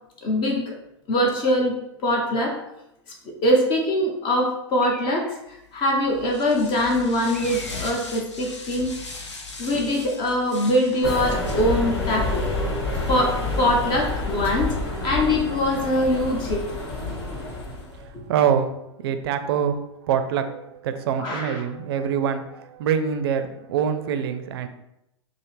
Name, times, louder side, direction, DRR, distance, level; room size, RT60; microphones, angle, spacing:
voice 1, 0.2-0.8 1.1-1.8 2.0-2.6 3.1-8.9 9.6-12.5 13.1-14.7 15.0-16.7 17.3-17.4 18.1-18.2 21.2-21.6, left 1 dB, 35° left, 0 dB, 0.8 m, -23 dB
Bird, 4.8-5.7 7.3-8.2, equal, ahead, 0.6 m, -43 dB
sound 1, 5.6-18.0, left 4 dB, 80° left, 0.7 m, -41 dB
sound 2, 11.0-18.0, left 2 dB, 65° left, 1.4 m, -28 dB
voice 2, 17.9-18.7 19.0-19.8 20.0-24.7, right 8 dB, 60° right, 8 dB, 0.5 m, -25 dB
5.2 x 2.1 x 3.1 m, 0.85 s
figure-of-eight pair, 100°, 15 cm